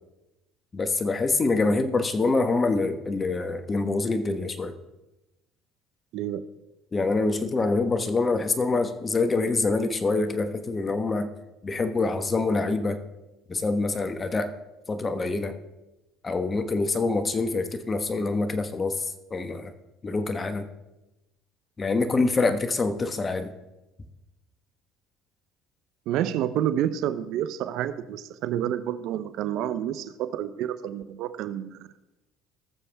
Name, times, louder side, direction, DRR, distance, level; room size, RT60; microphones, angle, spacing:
voice 1, 0.7-4.7 6.9-11.3 11.6-13.0 13.5-14.5 14.9-15.5 16.2-19.0 19.3-19.7 20.0-20.7 21.8-23.5, left 3 dB, 25° left, 9 dB, 1.2 m, -25 dB
voice 2, 26.1-31.8, right 11 dB, 70° right, 13 dB, 0.7 m, -29 dB
19.0 x 7.0 x 3.5 m, 1.0 s
supercardioid pair, 85°, 0 cm